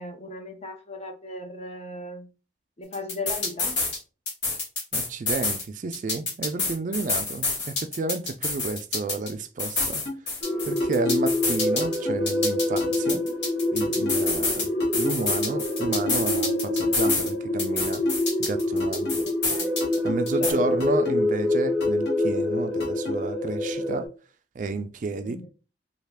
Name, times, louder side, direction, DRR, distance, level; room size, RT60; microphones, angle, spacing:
voice 1, 0.0-2.3 2.8-3.8 13.0-13.3 19.2-19.8 20.4-20.8 25.2-25.5, left 2 dB, 35° left, 0.6 m, -37 dB
sound 1, 2.9-4.0 4.3-5.6 5.9-9.3 9.6-12.0 12.3-14.7 14.9-17.3 17.6-20.0 20.3-20.5, left 3 dB, 80° left, 1.3 m, -28 dB
voice 2, 4.9-10.0 10.7-13.2 13.7-18.0 18.4-19.3 20.0-24.1 24.6-25.4, right 3 dB, 45° right, 0.3 m, -31 dB
sound 2, 9.8-10.1 10.8-11.2 11.8-12.1 12.8-13.2 13.8-14.2 14.8-15.2 15.8-16.1 16.8-17.2 17.8-18.1 18.8-19.2 19.8-20.2 20.8-21.2 21.8-22.1 22.8-23.2, left 2 dB, 65° left, 1.1 m, -33 dB
sound 3, 10.4-24.1, left 1 dB, ahead, 0.9 m, -26 dB
3.2 x 2.3 x 3.4 m
head